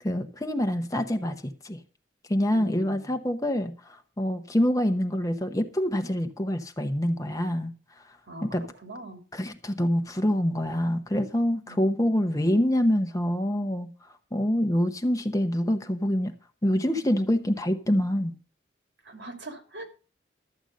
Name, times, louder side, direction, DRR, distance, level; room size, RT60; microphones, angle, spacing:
voice 1, 0.0-1.8 2.3-7.7 8.4-8.6 9.3-13.9 14.3-16.3 16.6-18.3, equal, 20° left, 0.9 m, -26 dB
voice 2, 2.5-3.2 8.3-9.2 11.7-11.9 19.0-19.8, right 1 dB, 80° right, 2.9 m, -42 dB
13.0 x 8.0 x 5.1 m
head